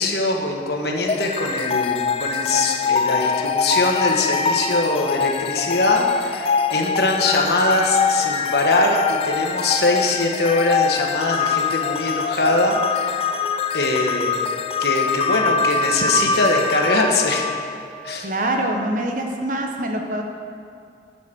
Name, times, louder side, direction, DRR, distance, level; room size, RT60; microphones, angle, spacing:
voice 1, 0.0-13.2 13.7-14.4 14.8-17.5 18.0-18.3, left 2 dB, 60° left, 1 dB, 1.2 m, -22 dB
sound 1, 1.1-18.2, left 5 dB, 30° left, 0.3 m, -23 dB
voice 2, 18.2-20.2, right 1 dB, 45° right, 2 dB, 0.9 m, -24 dB
10.5 x 6.5 x 6.1 m, 2.5 s
head